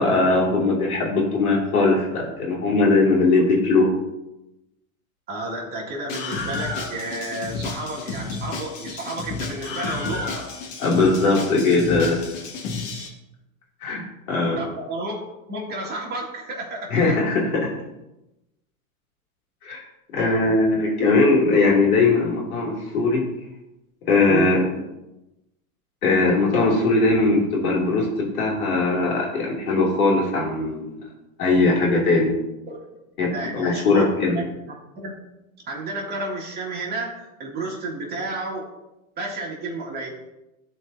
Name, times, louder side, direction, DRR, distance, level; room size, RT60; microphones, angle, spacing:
voice 1, 0.0-3.9 10.8-12.2 13.8-14.0 14.3-14.6 16.9-17.7 19.6-19.8 20.1-23.2 24.1-24.8 26.0-31.0 31.4-32.3 33.2-34.4, left 3 dB, 85° left, -2 dB, 2.9 m, -20 dB
voice 2, 5.3-10.5 14.4-15.2 15.5-16.9 24.3-24.6 32.7-32.8 33.3-35.1 35.7-38.7 39.2-40.1, right 2 dB, 25° right, -3 dB, 2.2 m, -31 dB
Screaming, 6.1-13.1, left 4 dB, 60° left, 1.9 m, -31 dB
12.5 x 4.5 x 2.7 m, 0.94 s
supercardioid pair, 130°, 42 cm